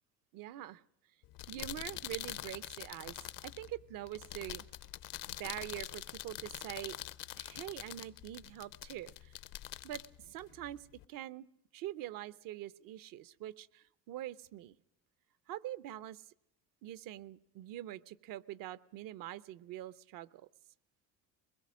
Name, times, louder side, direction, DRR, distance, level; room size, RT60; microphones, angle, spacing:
voice 1, 0.3-0.8 1.5-4.6 5.2-7.0 7.4-9.4 9.8-11.5 11.7-14.8 15.5-16.2 16.8-20.5, right 13 dB, 75° right, 17 dB, 0.8 m, -44 dB
sound 1, 1.2-11.0, left 14 dB, 70° left, 0.7 m, -45 dB
22.5 x 21.0 x 6.3 m, 0.76 s
cardioid pair, 110°, 34 cm